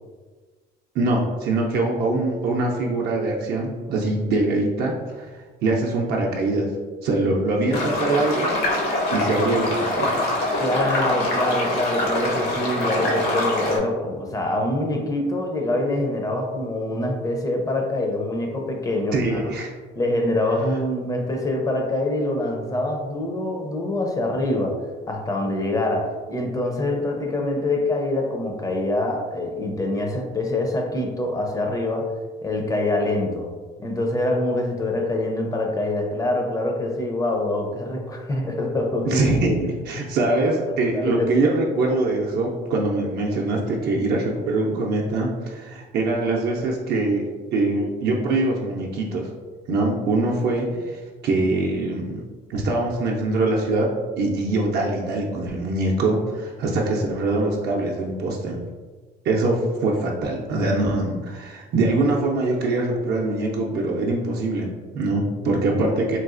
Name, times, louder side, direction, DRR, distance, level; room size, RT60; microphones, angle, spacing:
voice 1, 0.9-6.7 7.0-8.5 9.1-10.4 19.1-19.7 39.1-47.2 47.5-49.3 49.7-52.2 52.5-58.6 59.2-66.2, right 2 dB, 65° right, -2 dB, 0.5 m, -23 dB
sound 1, 7.7-13.8, left 1 dB, 70° left, 0.9 m, -24 dB
voice 2, 10.6-19.5 20.0-32.1 32.4-33.5 33.8-39.5 40.9-41.3 65.7-65.8, left 1 dB, 20° left, 2 dB, 0.5 m, -25 dB
3.8 x 2.3 x 2.5 m, 1.4 s
cardioid pair, 115°, 18 cm